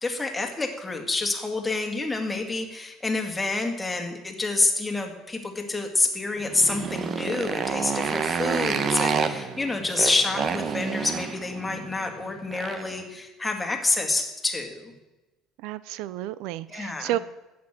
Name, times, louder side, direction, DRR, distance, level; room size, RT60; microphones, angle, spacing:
voice 1, 0.0-14.9 16.7-17.2, left 3 dB, 15° left, 3 dB, 2.1 m, -28 dB
Motorcycle, 6.4-13.0, right 6 dB, 35° right, 1.1 m, -29 dB
voice 2, 15.6-17.2, right 14 dB, 75° right, 17 dB, 0.4 m, -31 dB
12.0 x 8.5 x 7.6 m, 1.0 s
cardioid pair, 125°, 0 cm